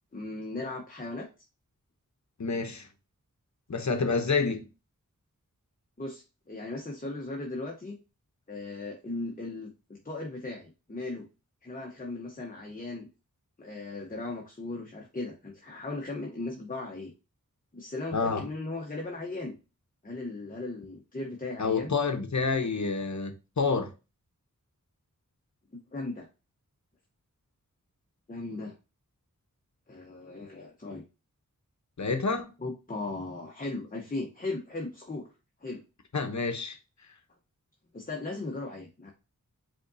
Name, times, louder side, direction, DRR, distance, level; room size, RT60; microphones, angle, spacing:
voice 1, 0.1-1.3 6.0-8.0 8.5-11.3 11.6-13.1 13.6-17.1 17.7-19.5 20.0-21.9 25.7-26.3 28.3-28.7 29.9-31.0 32.6-35.3 35.6-35.8 37.9-39.1, left 2 dB, 25° left, 0.9 m, -37 dB
voice 2, 2.4-2.9 3.7-4.7 18.1-18.4 21.6-23.9 32.0-32.5 36.1-36.8, left 4 dB, 60° left, 0.9 m, -28 dB
5.1 x 3.7 x 2.7 m
wide cardioid pair, 80°, 33 cm